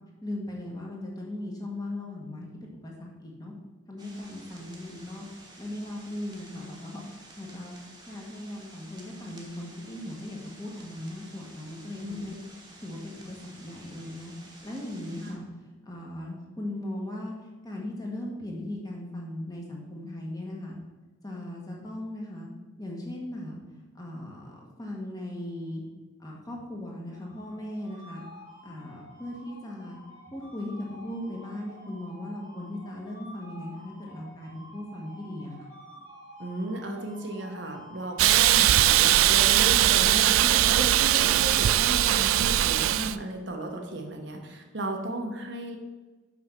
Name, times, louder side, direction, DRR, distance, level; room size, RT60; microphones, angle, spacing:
voice 1, 0.2-3.5 3.9-5.3 5.6-7.0 7.4-7.8 8.1-12.4 12.8-14.3 14.6-15.5 15.9-17.3 17.6-20.8 21.2-22.5 22.8-23.5 23.9-25.8 26.2-28.2 28.6-30.0 30.3-35.5, left 1 dB, 20° left, -2 dB, 1.3 m, -38 dB
sound 1, 4.0-15.3, right 2 dB, 20° right, 1.2 m, -51 dB
sound 2, 27.1-42.4, equal, 70° left, 2.1 m, -50 dB
voice 2, 36.4-45.8, right 1 dB, 60° right, 2 dB, 1.0 m, -34 dB
Hiss, 38.2-43.2, right 13 dB, 90° right, 0.3 m, -21 dB
5.9 x 5.5 x 6.0 m, 1.2 s
head